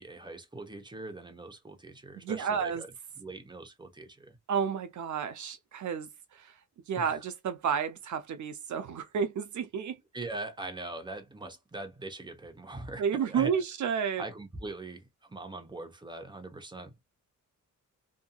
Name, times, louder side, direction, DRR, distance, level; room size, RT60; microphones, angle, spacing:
voice 1, 0.0-2.9 3.2-4.4 7.0-7.2 10.1-13.5 14.2-16.9, right 2 dB, 15° right, 0.8 m, -42 dB
voice 2, 2.2-2.8 4.5-6.6 6.9-10.0 13.0-14.2, right 7 dB, 65° right, 0.6 m, -31 dB
2.8 x 2.5 x 2.2 m
cardioid pair, 105°, 31 cm